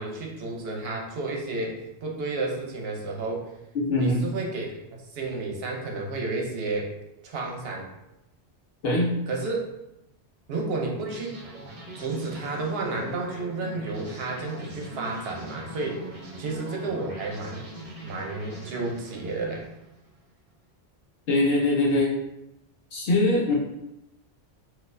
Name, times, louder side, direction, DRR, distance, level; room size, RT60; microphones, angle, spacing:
voice 1, 0.0-3.5 3.9-4.8 5.1-6.9 7.2-7.9 9.3-9.7 10.5-11.4 11.9-16.0 16.4-17.7 18.0-19.7 23.5-23.6, right 3 dB, 70° right, 0 dB, 0.9 m, -31 dB
voice 2, 3.7-4.3 8.8-9.1 21.3-22.1 22.9-23.5, left 2 dB, 70° left, -3 dB, 0.9 m, -22 dB
sound 1, 11.0-20.1, right 1 dB, 35° right, 0.8 m, -42 dB
3.9 x 2.4 x 2.6 m, 0.87 s
omnidirectional pair, 1.1 m